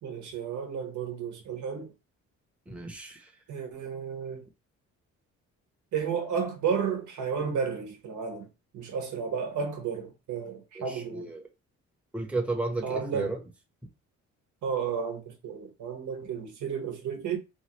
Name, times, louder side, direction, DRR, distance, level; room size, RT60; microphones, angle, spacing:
voice 1, 0.0-1.9 3.5-4.5 5.9-8.5 8.7-11.3 12.8-13.3 14.6-17.4, right 6 dB, 75° right, 1.0 m, -32 dB
voice 2, 2.7-3.3 10.7-11.4 12.1-13.4, right 2 dB, 5° right, 0.8 m, -33 dB
3.1 x 2.2 x 3.0 m
cardioid pair, 90°, 30 cm